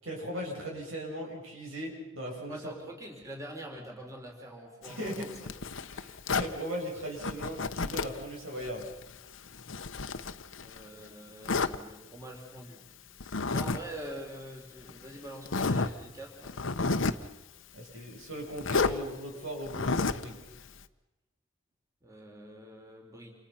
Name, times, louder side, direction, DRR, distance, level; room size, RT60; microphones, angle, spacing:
voice 1, 0.0-2.6 4.9-5.3 5.9-8.9 17.7-20.4, equal, 80° right, 0 dB, 7.6 m, -38 dB
voice 2, 2.5-5.5 10.6-12.8 13.2-16.6 22.0-23.3, right 1 dB, 15° right, 1 dB, 4.1 m, -45 dB
Zipper (clothing), 4.8-6.6 7.2-8.2 8.6-10.9 11.5-11.8 13.2-13.8 14.1-14.2 14.9-15.0 15.5-15.9 16.4-17.3 18.6-19.0 19.7-20.3, left 4 dB, 70° left, 1.0 m, -31 dB
29.0 x 28.0 x 5.8 m, 1.0 s
head